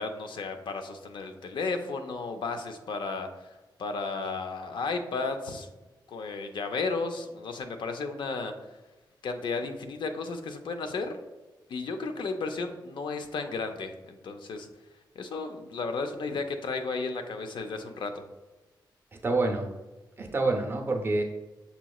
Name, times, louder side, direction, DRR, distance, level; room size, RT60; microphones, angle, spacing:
voice 1, 0.0-3.5 3.8-5.7 6.1-8.5 9.2-11.2 11.7-14.7 15.2-18.3, left 4 dB, 75° left, 7 dB, 0.5 m, -33 dB
voice 2, 19.2-19.7 20.2-21.2, right 2 dB, 30° right, 1 dB, 0.7 m, -27 dB
6.7 x 3.0 x 2.3 m, 1.1 s
wide cardioid pair, 130°, 8 cm